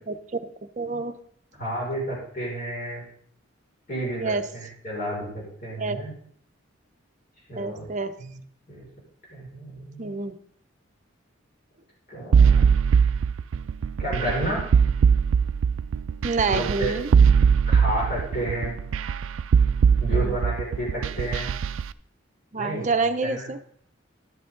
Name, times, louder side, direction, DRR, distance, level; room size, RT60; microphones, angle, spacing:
voice 1, 0.1-0.4 0.8-1.2 4.2-4.5 5.8-6.0 7.6-8.1 10.0-10.3 16.2-17.1 20.1-20.4 22.5-23.6, right 3 dB, 40° right, 8 dB, 0.6 m, -27 dB
voice 2, 1.6-3.0 3.9-6.1 7.5-7.9 8.2-8.4 8.7-8.8 9.3-10.2 12.1-12.8 14.0-14.6 16.4-17.0 17.7-18.8 20.0-21.6 22.6-22.9 23.2-23.5, right 1 dB, 45° left, -4 dB, 5.5 m, -31 dB
sound 1, 12.3-21.8, right 6 dB, 85° right, 0.4 m, -20 dB
12.0 x 8.4 x 3.8 m, 0.62 s
head